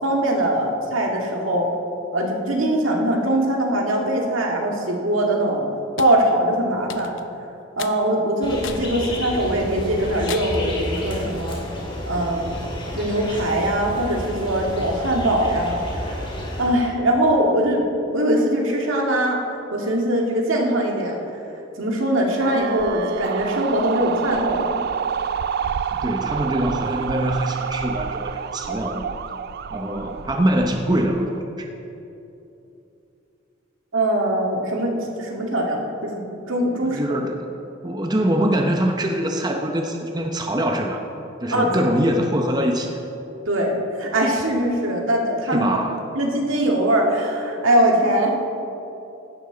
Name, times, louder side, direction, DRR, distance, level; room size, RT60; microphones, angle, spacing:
voice 1, 0.0-1.7 2.1-5.7 6.0-7.1 7.8-11.6 12.1-12.5 12.9-16.3 16.6-17.9 18.1-19.4 19.7-21.2 21.8-24.8 33.9-37.0 41.5-41.8 43.5-43.7 44.0-45.7 46.2-48.3, right 1 dB, 80° right, 0 dB, 2.0 m, -21 dB
sound 1, 6.0-6.2 6.9-7.3 7.8-8.0 8.6-8.9 9.4-9.5 10.3-10.7, left 7 dB, 70° left, 0.6 m, -34 dB
sound 2, 8.4-16.7, equal, 25° left, 2.4 m, -31 dB
sound 3, 22.4-31.4, right 7 dB, 50° right, 0.3 m, -28 dB
voice 2, 26.0-29.1 29.7-31.3 31.6-31.7 36.8-37.6 37.8-41.0 41.4-43.0 45.4-46.0, right 1 dB, 20° right, 2 dB, 0.7 m, -23 dB
16.5 x 11.5 x 3.9 m, 2.9 s
head